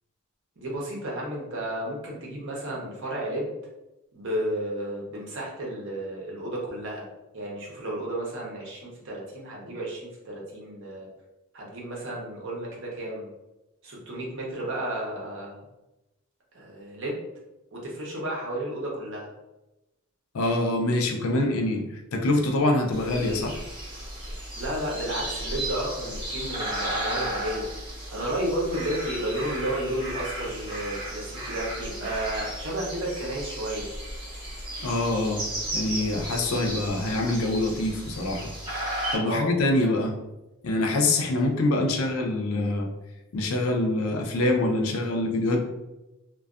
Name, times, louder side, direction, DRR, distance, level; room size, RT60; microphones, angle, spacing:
voice 1, 0.6-3.5 4.1-7.0 7.3-11.1 11.5-13.3 13.8-15.6 16.5-17.2 17.7-19.3 24.5-27.6 28.1-33.9 39.2-39.5, right 1 dB, 55° right, -3 dB, 0.7 m, -32 dB
voice 2, 20.3-21.8 22.1-23.6 34.8-35.4 35.7-38.5 39.1-40.2 40.6-42.9 43.3-45.6, left 2 dB, 65° left, 3 dB, 0.4 m, -25 dB
sound 1, 22.9-39.2, right 1 dB, 20° right, 0.9 m, -34 dB
2.5 x 2.2 x 2.3 m, 0.98 s
head